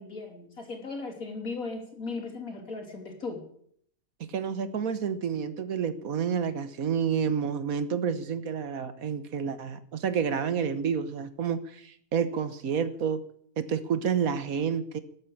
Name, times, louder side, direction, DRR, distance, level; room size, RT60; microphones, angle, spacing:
voice 1, 0.0-3.4, left 3 dB, 70° left, 3 dB, 3.6 m, -37 dB
voice 2, 4.3-13.2 13.6-15.0, right 7 dB, 70° right, 12 dB, 1.5 m, -29 dB
14.0 x 8.7 x 8.5 m, 0.64 s
omnidirectional pair, 1.5 m